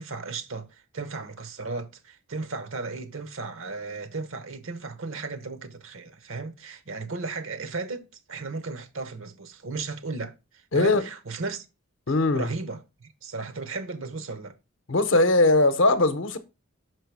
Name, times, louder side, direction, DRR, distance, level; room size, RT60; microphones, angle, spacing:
voice 1, 0.0-11.7 12.3-14.6, right 3 dB, 65° right, 0.8 m, -35 dB
voice 2, 10.7-11.0 12.1-12.5 14.9-16.4, left 2 dB, 60° left, 0.7 m, -20 dB
6.1 x 4.5 x 4.6 m
head